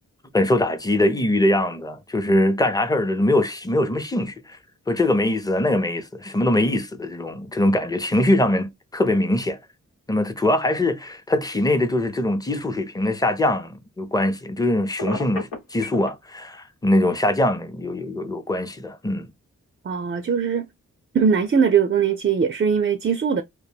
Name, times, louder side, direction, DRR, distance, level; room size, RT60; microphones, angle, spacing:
voice 1, 0.3-4.6 4.9-9.6 10.1-19.3, left 1 dB, 10° left, 0.7 m, -22 dB
Telephone, 15.0-16.1, left 3 dB, 85° left, 1.1 m, -30 dB
voice 2, 19.8-20.7 21.1-23.4, right 6 dB, 35° right, 0.5 m, -20 dB
2.2 x 2.1 x 3.2 m
cardioid pair, 45°, 31 cm